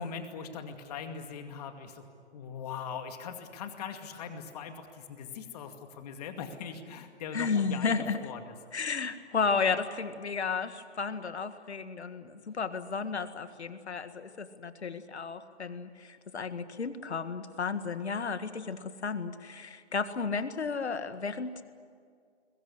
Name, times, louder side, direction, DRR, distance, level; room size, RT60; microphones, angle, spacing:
voice 1, 0.0-2.1 2.3-8.0 8.2-8.5, left 6 dB, 35° left, 6 dB, 2.3 m, -41 dB
voice 2, 7.3-8.3 8.7-21.6, left 5 dB, 70° left, 10 dB, 1.9 m, -33 dB
22.0 x 21.5 x 9.9 m, 2.1 s
figure-of-eight pair, 135°, 35 cm